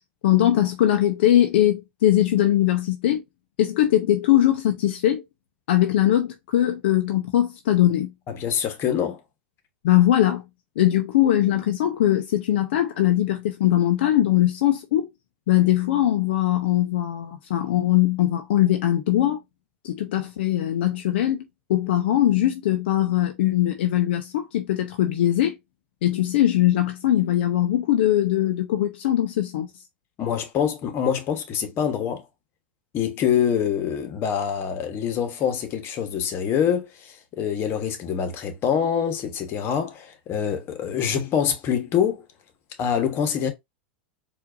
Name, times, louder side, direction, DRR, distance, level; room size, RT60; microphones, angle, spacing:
voice 1, 0.2-3.2 3.6-5.2 5.7-8.1 9.8-10.4 10.8-15.1 15.5-19.4 19.8-21.4 21.7-25.6 26.0-29.7, left 13 dB, 70° left, 0.6 m, -21 dB
voice 2, 8.3-9.2 30.2-32.2 32.9-42.2 42.8-43.5, left 8 dB, 40° left, 1.2 m, -25 dB
4.5 x 2.6 x 2.5 m
hypercardioid pair, 100°, 6 cm